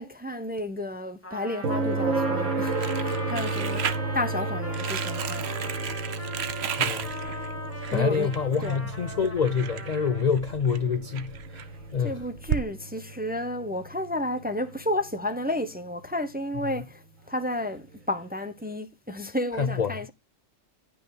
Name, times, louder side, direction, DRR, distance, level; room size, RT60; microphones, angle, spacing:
voice 1, 0.0-3.9 4.1-5.7 7.9-8.3 8.6-8.8 12.0-20.1, left 1 dB, 10° right, 0.5 m, -32 dB
Trumpet, 1.2-10.2, left 1 dB, 10° left, 1.7 m, -40 dB
sound 1, 1.6-15.5 17.7-17.8, right 3 dB, 75° right, 2.3 m, -33 dB
Crumpling crinkling, 2.6-12.6, right 8 dB, 55° right, 1.0 m, -35 dB
voice 2, 6.8-7.1 7.9-11.7 11.9-12.1 19.6-19.9, left 6 dB, 75° left, 0.3 m, -26 dB
11.0 x 5.8 x 3.9 m
omnidirectional pair, 1.4 m